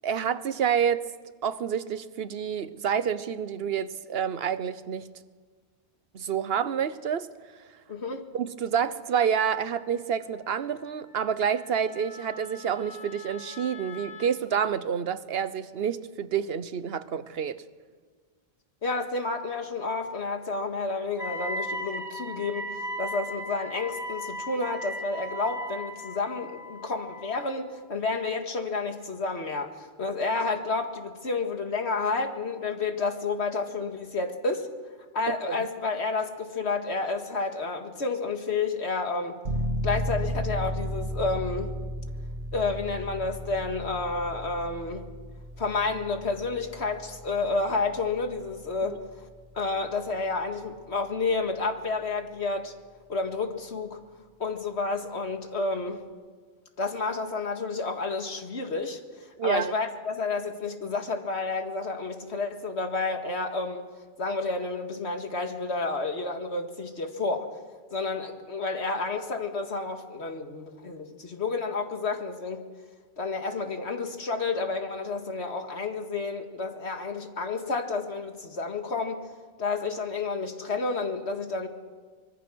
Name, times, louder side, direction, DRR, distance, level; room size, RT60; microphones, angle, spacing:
voice 1, 0.0-1.0 1.4-5.1 6.1-7.3 8.3-17.6 35.3-35.6 48.9-49.0 59.4-59.7, right 8 dB, 65° right, 1.1 m, -28 dB
voice 2, 7.9-8.2 18.8-34.7 35.1-39.4 39.8-41.7 42.5-45.1 45.6-49.0 49.6-52.7 53.1-54.0 54.4-56.0 56.8-59.0 59.4-63.9 64.2-67.5 67.9-72.6 73.2-79.3 79.6-81.7, left 3 dB, 80° left, 2.2 m, -30 dB
Wind instrument woodwind instrument, 9.2-14.3, left 5 dB, 60° left, 4.3 m, -47 dB
Wind instrument woodwind instrument 2, 21.2-27.6, equal, 5° right, 2.4 m, -36 dB
sound 1, 39.5-50.0, equal, 85° right, 2.3 m, -35 dB
24.5 x 22.0 x 6.3 m
omnidirectional pair, 1.1 m